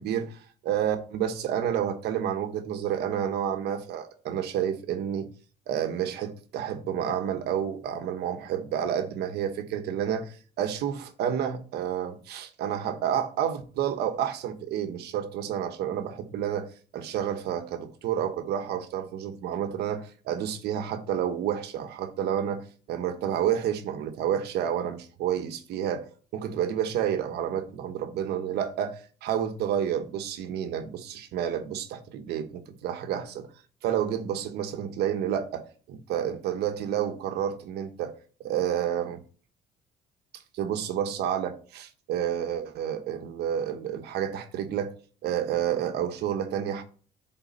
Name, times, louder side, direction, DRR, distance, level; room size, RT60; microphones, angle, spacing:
voice 1, 0.0-5.3 5.7-16.7 16.9-26.1 26.3-33.5 33.8-38.1 38.4-39.2 40.5-44.9 45.2-46.8, right 9 dB, 75° right, 1.1 m, -30 dB
8.2 x 4.1 x 4.0 m
cardioid pair, 110°, 17 cm